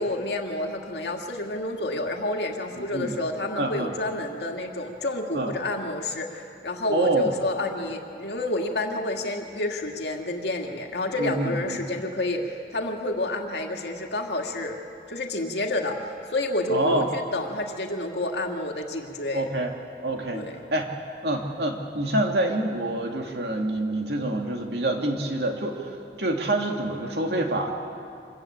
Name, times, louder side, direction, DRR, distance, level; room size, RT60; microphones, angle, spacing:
voice 1, 0.0-14.8 15.1-19.5 20.3-20.6, left 2 dB, 75° left, 2 dB, 2.1 m, -29 dB
voice 2, 2.8-3.1 3.6-3.9 5.3-5.5 6.9-7.3 11.2-11.8 16.7-17.1 19.3-19.7 20.0-20.9 21.2-25.8 26.2-27.7, right 1 dB, 70° right, 2 dB, 2.3 m, -26 dB
25.5 x 14.5 x 8.8 m, 2.5 s
head